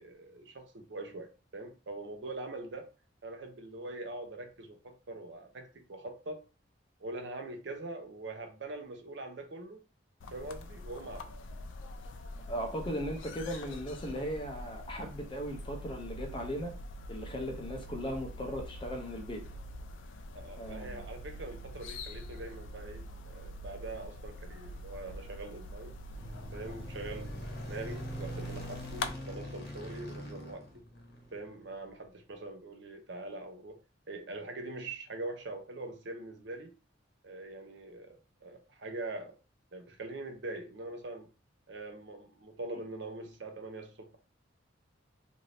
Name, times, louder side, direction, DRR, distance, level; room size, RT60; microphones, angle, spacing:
voice 1, 0.0-2.9 3.2-6.4 7.0-9.8 10.3-11.3 20.3-26.0 26.5-30.6 31.3-33.8 34.1-36.7 37.2-39.4 39.7-41.3 41.7-44.2, right 2 dB, 65° right, 0.6 m, -43 dB
sound 1, 10.2-29.1, left 1 dB, 85° left, 0.4 m, -44 dB
voice 2, 12.5-16.7 17.1-19.4 20.6-21.0, equal, 25° left, 0.6 m, -37 dB
sound 2, 26.1-31.6, equal, 60° left, 0.9 m, -43 dB
2.6 x 2.6 x 3.2 m
head